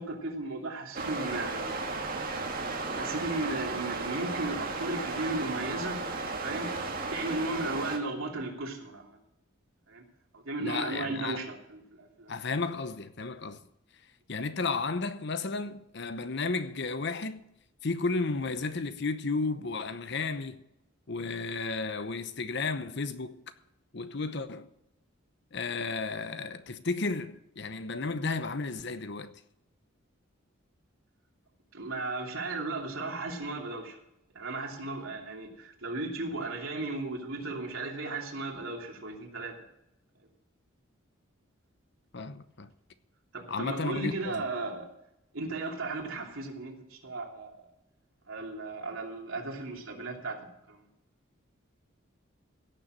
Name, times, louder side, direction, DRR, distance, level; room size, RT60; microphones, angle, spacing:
voice 1, 0.0-1.8 2.9-6.0 6.4-6.7 7.1-9.2 9.9-10.0 10.3-12.3 31.7-34.0 34.3-39.5 43.3-44.9 45.3-47.6 48.3-50.4 50.7-50.8, right 2 dB, 85° right, 2.8 m, -35 dB
sound 1, 0.9-8.0, right 3 dB, 45° right, 2.1 m, -34 dB
voice 2, 10.6-11.4 12.3-13.6 14.3-17.4 17.8-20.6 21.1-23.4 23.9-24.7 25.5-29.4 42.1-42.7 43.5-44.5, left 3 dB, 55° left, 0.9 m, -33 dB
17.0 x 7.0 x 6.5 m
head